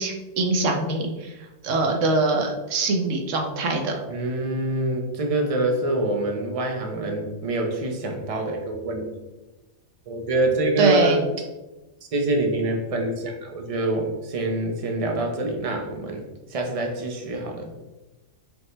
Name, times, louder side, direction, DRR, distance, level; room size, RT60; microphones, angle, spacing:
voice 1, 0.0-3.9 10.8-11.2, right 2 dB, 75° right, 2 dB, 1.0 m, -23 dB
voice 2, 4.1-9.1 10.1-11.2 12.1-16.2 16.5-17.7, right 2 dB, 55° right, 2 dB, 0.4 m, -25 dB
4.9 x 2.1 x 3.2 m, 1.1 s
omnidirectional pair, 1.3 m